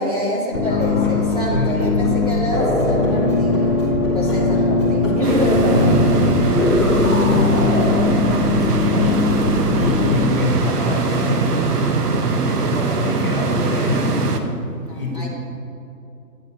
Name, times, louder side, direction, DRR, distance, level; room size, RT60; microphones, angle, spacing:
voice 1, 0.0-3.9 4.1-6.6 14.9-15.3, equal, 25° right, -6 dB, 0.9 m, -25 dB
sound 1, 0.5-10.1, left 3 dB, 15° left, 1.1 m, -19 dB
voice 2, 0.6-1.9 5.7-6.3 6.8-15.3, left 3 dB, 35° left, -2 dB, 0.9 m, -27 dB
sound 2, 5.2-14.4, right 4 dB, 75° right, 0.9 m, -21 dB
9.4 x 7.5 x 2.8 m, 2.7 s
hypercardioid pair, 175°, 47 cm